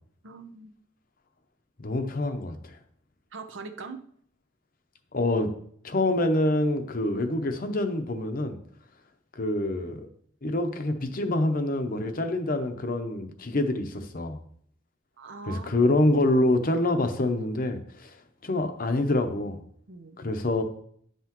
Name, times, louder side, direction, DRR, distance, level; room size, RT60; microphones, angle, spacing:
voice 1, 0.2-0.7 3.3-4.0 15.2-15.8 19.9-20.2, right 4 dB, 65° right, 7 dB, 0.8 m, -41 dB
voice 2, 1.8-2.5 5.1-5.5 5.8-8.6 9.4-10.1 10.4-14.4 15.5-18.1 18.4-19.6 20.2-20.6, left 1 dB, 45° left, 7 dB, 0.7 m, -26 dB
10.5 x 5.7 x 3.0 m, 0.63 s
head